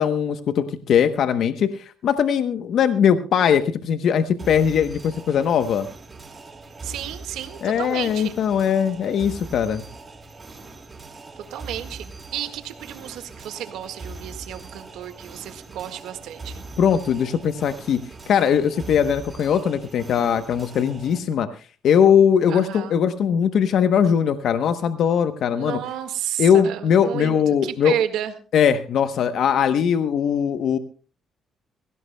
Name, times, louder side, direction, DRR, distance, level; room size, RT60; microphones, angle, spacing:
voice 1, 0.0-5.9 7.6-9.8 16.8-18.0 18.3-21.5 21.8-25.8 26.4-27.9 28.5-30.8, left 8 dB, 70° left, 10 dB, 0.9 m, -20 dB
sound 1, 4.4-21.2, right 3 dB, 30° right, 3.4 m, -41 dB
voice 2, 6.8-8.3 11.5-16.6 22.5-22.9 25.5-27.4 27.6-28.3, right 11 dB, 90° right, 8 dB, 1.6 m, -31 dB
22.5 x 16.5 x 2.2 m, 0.37 s
cardioid pair, 90°, 0 cm